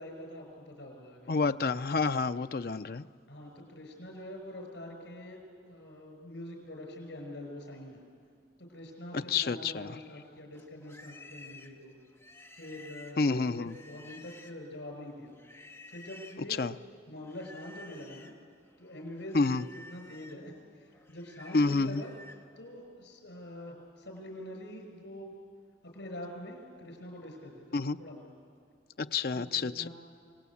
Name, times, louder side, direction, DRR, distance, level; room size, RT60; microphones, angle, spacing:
voice 1, 0.0-1.3 3.3-8.0 8.6-12.0 12.6-15.3 15.9-16.6 17.1-18.3 18.8-19.5 19.9-22.2 22.6-25.3 25.8-28.3 29.3-29.9, left 1 dB, 85° left, 3 dB, 5.7 m, -45 dB
voice 2, 1.3-3.1 9.1-10.0 13.2-13.8 16.6-16.7 19.3-19.6 21.5-22.0 27.7-28.0 29.0-29.9, left 4 dB, 55° left, 11 dB, 0.5 m, -29 dB
Livestock farm animals working animals, 10.5-14.8 15.4-16.5 17.2-18.4 18.8-22.4, left 2 dB, 15° left, 1.1 m, -52 dB
27.5 x 18.5 x 8.5 m, 2.2 s
head